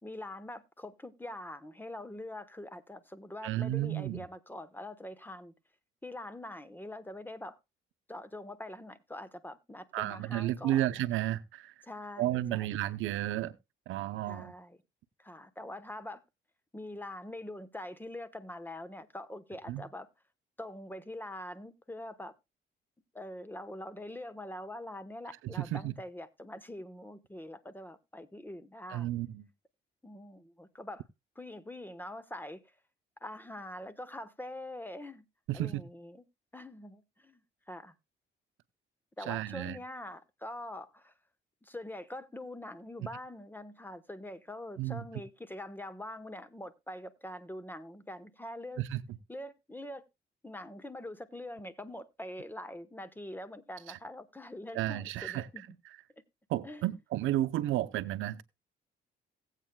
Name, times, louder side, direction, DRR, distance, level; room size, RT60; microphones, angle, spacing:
voice 1, 0.0-5.5 6.0-7.6 8.1-10.9 11.8-12.8 14.2-14.8 15.2-16.2 16.7-20.1 20.6-22.3 23.1-29.1 30.0-31.0 31.4-32.7 33.2-35.2 35.5-36.2 36.5-37.4 37.7-37.9 39.2-41.1 41.6-48.8 49.3-50.0 50.4-55.6 56.6-56.8, left 1 dB, 10° left, 1.0 m, -44 dB
voice 2, 3.4-4.3 9.9-11.7 12.2-13.6 13.9-14.5 19.7-19.8 25.4-25.9 28.9-29.4 35.5-35.8 39.3-39.8 44.8-45.0 48.8-49.0 53.9-54.0 54.7-55.5 56.5-58.4, right 14 dB, 85° right, 0.7 m, -32 dB
17.5 x 8.2 x 2.2 m
cardioid pair, 90°, 20 cm